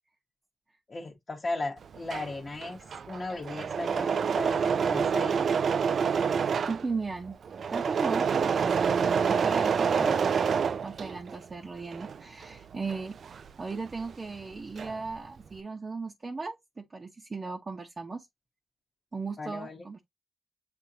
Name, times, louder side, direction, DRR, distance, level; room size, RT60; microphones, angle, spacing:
voice 1, 0.9-5.5 10.0-10.2 19.4-19.8, left 2 dB, 40° left, 1.0 m, -37 dB
Engine / Mechanisms, 1.8-11.4 11.8-14.1 14.4-15.1, right 6 dB, 65° right, 0.3 m, -28 dB
voice 2, 6.6-7.4 7.7-10.4 10.8-13.1 13.6-18.3 19.1-20.0, right 4 dB, 40° right, 0.9 m, -37 dB
7.0 x 2.7 x 2.8 m
cardioid pair, 60°, 0 cm